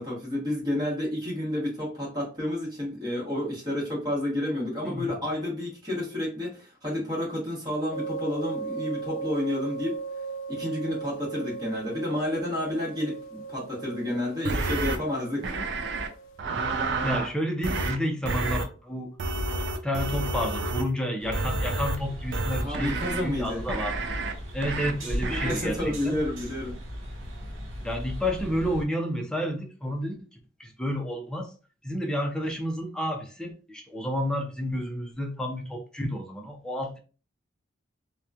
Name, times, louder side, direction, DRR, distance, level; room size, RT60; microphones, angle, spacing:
voice 1, 0.0-10.0 10.5-15.6 22.6-23.6 25.3-26.8, left 1 dB, 20° right, 1.1 m, -30 dB
sound 1, 7.9-16.4, right 4 dB, 85° left, 0.3 m, -38 dB
sound 2, 14.4-15.0 15.4-16.1 16.4-17.3 17.6-18.0 18.2-18.6 19.2-20.9 21.3-22.0 22.3-23.2 23.7-24.3 24.6-24.9 25.2-25.5, right 2 dB, 60° right, 0.4 m, -29 dB
voice 2, 16.7-19.1 19.8-24.0 24.5-26.2 27.8-30.3 30.6-31.5 31.8-37.0, equal, 5° left, 0.5 m, -30 dB
sound 3, 21.2-28.9, equal, 85° right, 0.8 m, -37 dB
2.9 x 2.2 x 2.3 m
head